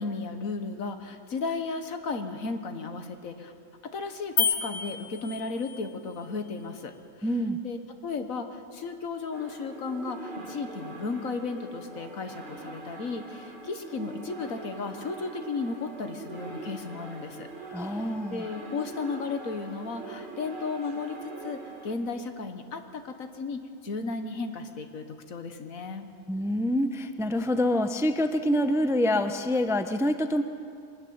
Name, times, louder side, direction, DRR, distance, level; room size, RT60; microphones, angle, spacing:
voice 1, 0.0-3.5 3.8-7.3 7.6-17.5 17.8-18.0 18.3-26.1, left 4 dB, 80° left, 7 dB, 1.8 m, -34 dB
sound 1, 4.4-5.9, left 6 dB, 50° left, 1.4 m, -29 dB
voice 2, 7.2-7.6 17.7-18.4 26.3-30.4, left 1 dB, 5° right, 8 dB, 0.6 m, -26 dB
sound 2, 9.3-22.0, right 3 dB, 35° right, 2.3 m, -42 dB
23.0 x 13.5 x 9.5 m, 2.4 s
omnidirectional pair, 1.4 m